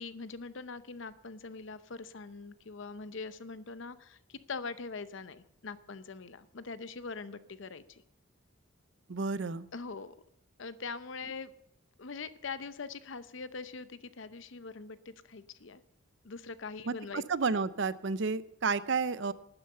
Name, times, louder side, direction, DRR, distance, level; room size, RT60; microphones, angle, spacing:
voice 1, 0.0-8.0 9.7-10.1 10.6-11.5 12.0-15.8 16.2-17.2, left 4 dB, 65° left, 14 dB, 0.7 m, -42 dB
voice 2, 9.1-9.7 16.9-19.3, right 4 dB, 60° right, 16 dB, 0.6 m, -31 dB
12.0 x 9.9 x 6.7 m, 0.77 s
head